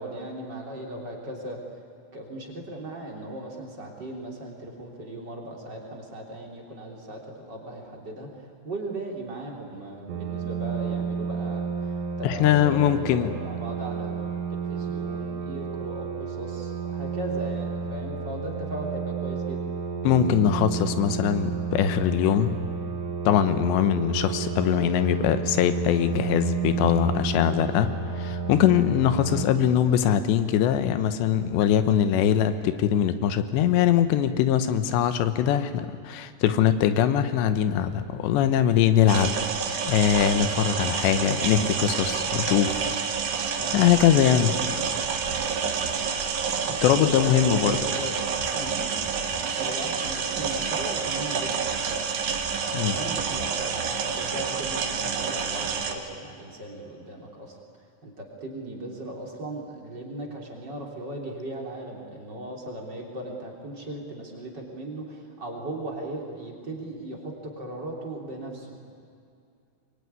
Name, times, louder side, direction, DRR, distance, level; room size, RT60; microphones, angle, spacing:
voice 1, 0.0-1.6 2.1-8.3 8.6-11.9 12.2-12.8 13.1-19.7 29.6-29.8 46.7-49.1 49.6-52.1 52.3-57.6 58.0-68.8, right 1 dB, 25° right, 0 dB, 3.3 m, -37 dB
sound 1, 10.1-29.5, right 5 dB, 90° right, 4.4 m, -31 dB
voice 2, 12.2-13.3 20.0-22.7 23.3-39.3 39.6-43.1 43.7-44.6 46.8-47.8 52.7-53.0, left 10 dB, 85° left, 10 dB, 3.2 m, -22 dB
sound 2, 39.1-55.9, right 6 dB, 60° right, 2.5 m, -28 dB
23.5 x 23.0 x 9.6 m, 2.4 s
omnidirectional pair, 4.9 m